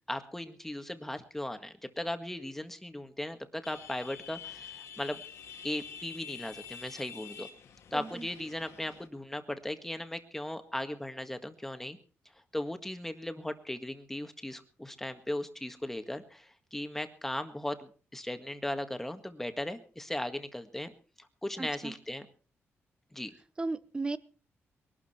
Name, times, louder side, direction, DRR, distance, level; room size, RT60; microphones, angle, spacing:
voice 1, 0.1-5.2 5.6-7.5 7.9-12.0 12.5-20.9 21.2-22.3 23.1-23.3, left 1 dB, 5° left, 8 dB, 1.8 m, -37 dB
sound 1, 3.6-9.1, left 7 dB, 80° left, 2.5 m, -47 dB
voice 2, 7.9-8.3 21.6-21.9 23.6-24.2, right 3 dB, 20° right, 15 dB, 1.0 m, -35 dB
22.0 x 12.5 x 4.4 m, 0.39 s
cardioid pair, 130°, 5 cm